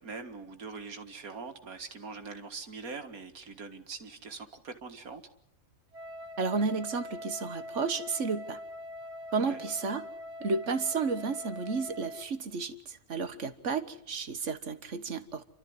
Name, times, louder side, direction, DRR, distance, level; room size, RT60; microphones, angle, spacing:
voice 1, 0.0-5.3 9.4-9.6, right 4 dB, 90° right, 7 dB, 2.3 m, -43 dB
Wind instrument woodwind instrument, 5.9-12.3, left 1 dB, 30° right, 2.2 m, -43 dB
voice 2, 6.4-8.6 9.3-10.0 10.4-15.4, right 4 dB, 60° right, 10 dB, 1.7 m, -32 dB
30.0 x 13.0 x 9.5 m, 0.71 s
omnidirectional pair, 1.5 m